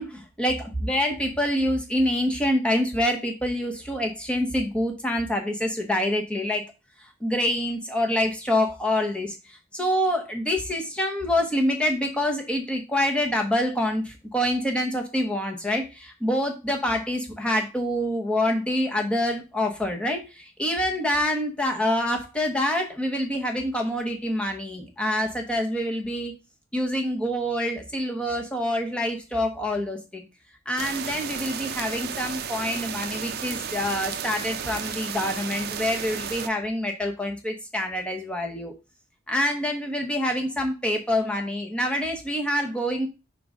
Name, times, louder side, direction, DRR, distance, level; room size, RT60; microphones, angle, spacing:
voice 1, 0.0-6.6 7.2-9.4 9.7-26.3 26.7-30.2 30.7-38.7 39.3-43.1, left 1 dB, 5° left, 2 dB, 1.0 m, -26 dB
sound 1, 30.8-36.5, right 7 dB, 55° right, 0.5 m, -33 dB
5.2 x 3.9 x 4.9 m, 0.28 s
head